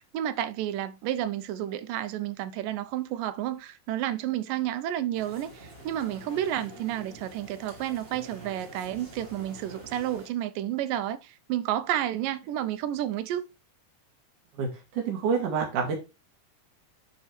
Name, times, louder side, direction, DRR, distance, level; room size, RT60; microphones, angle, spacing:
voice 1, 0.0-13.4, right 12 dB, 90° right, 2.3 m, -31 dB
sound 1, 5.1-10.3, right 2 dB, 40° right, 0.8 m, -47 dB
voice 2, 14.6-15.9, right 6 dB, 70° right, 3.1 m, -28 dB
9.9 x 3.5 x 4.3 m
omnidirectional pair, 3.8 m